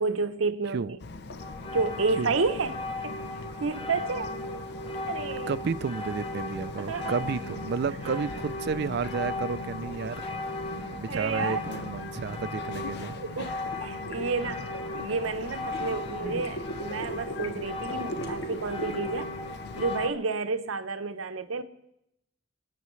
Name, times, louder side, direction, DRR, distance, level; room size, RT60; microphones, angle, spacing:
voice 1, 0.0-0.8 1.7-3.1 3.6-4.4 5.0-5.5 6.8-7.2 8.1-8.2 11.1-11.6 13.2-19.3 19.7-21.6, right 4 dB, 90° right, 0.8 m, -30 dB
Bird vocalization bird call bird song, 1.0-20.1, left 3 dB, 55° left, 0.6 m, -42 dB
sound 1, 1.4-20.1, left 2 dB, 25° left, 1.1 m, -37 dB
voice 2, 5.5-10.2 10.9-13.2, right 5 dB, 55° right, 0.4 m, -32 dB
sound 2, 13.6-15.5 16.1-19.2, equal, 75° left, 1.4 m, -38 dB
28.0 x 9.3 x 3.2 m
head